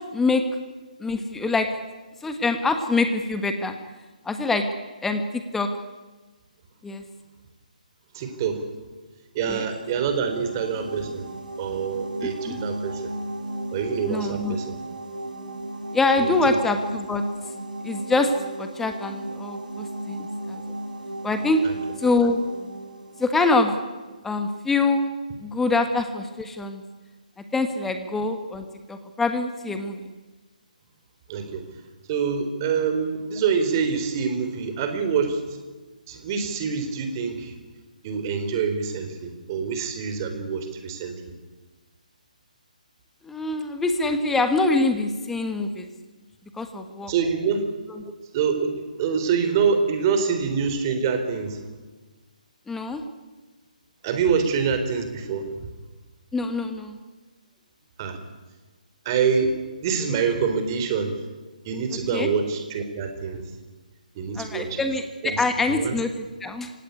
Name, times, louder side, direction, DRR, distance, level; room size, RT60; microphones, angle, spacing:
voice 1, 0.1-0.4 1.0-1.7 2.2-3.7 4.2-4.6 5.0-5.2 5.5-5.7 6.8-7.0 9.5-9.6 12.2-12.6 14.0-14.6 15.9-17.2 17.8-18.3 18.6-20.6 21.2-21.6 22.0-22.4 23.2-23.8 24.2-25.1 25.4-26.8 27.5-30.1 43.2-45.9 46.6-47.1 48.0-48.1 50.2-50.3 52.7-53.0 56.3-57.0 62.1-62.3 64.4-66.7, left 3 dB, 5° left, 7 dB, 1.4 m, -24 dB
voice 2, 8.1-8.6 9.3-11.3 11.6-13.1 13.7-14.8 16.2-16.5 21.6-21.7 31.3-31.6 32.1-35.6 36.1-37.5 38.0-41.3 47.1-47.7 48.3-51.6 54.0-55.7 58.0-58.2 59.0-59.5 59.8-61.2 61.7-63.4 64.2-64.8 65.2-65.9, right 6 dB, 25° right, 7 dB, 3.9 m, -26 dB
sound 1, 9.6-24.3, right 1 dB, 70° right, 4.5 m, -35 dB
27.5 x 17.5 x 9.6 m, 1.3 s
figure-of-eight pair, 140°, 4 cm